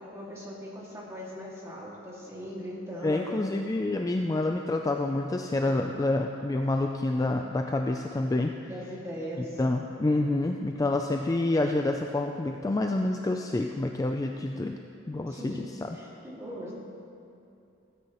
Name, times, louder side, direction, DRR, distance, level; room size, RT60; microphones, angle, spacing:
voice 1, 0.0-3.6 8.6-9.6 15.3-16.7, equal, 15° right, -5 dB, 2.1 m, -40 dB
voice 2, 3.0-8.5 9.6-14.8 15.1-15.9, left 2 dB, 20° left, 3 dB, 0.3 m, -28 dB
16.5 x 9.3 x 3.0 m, 2.7 s
head